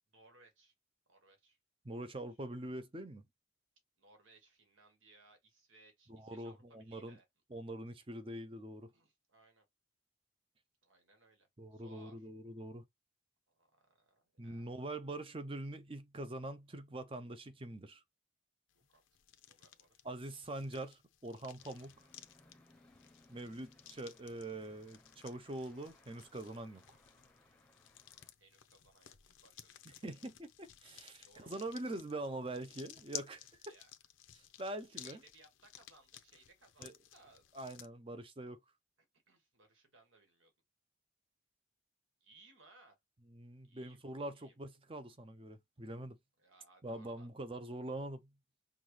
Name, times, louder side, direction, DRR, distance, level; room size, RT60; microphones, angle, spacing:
voice 1, 0.1-0.7 1.1-1.6 1.9-2.2 4.0-7.2 8.9-9.6 10.8-12.3 13.5-14.7 18.9-19.0 19.3-20.0 20.7-20.9 28.4-30.1 31.2-31.6 33.6-33.9 34.9-37.4 39.3-40.5 42.2-43.0 43.6-44.0 44.3-44.5 46.4-47.3, right 2 dB, 85° right, 1.6 m, -65 dB
voice 2, 1.8-3.2 6.1-7.2 7.5-8.9 11.6-12.8 14.4-18.0 20.0-22.1 23.3-26.8 30.0-33.5 34.3-35.2 36.8-36.9 37.5-38.6 43.3-46.2 46.8-48.3, right 1 dB, 25° right, 0.5 m, -44 dB
sound 1, 18.7-37.9, left 11 dB, 85° left, 0.7 m, -55 dB
sound 2, 21.6-28.3, left 1 dB, 5° left, 0.8 m, -66 dB
5.8 x 2.3 x 3.1 m
head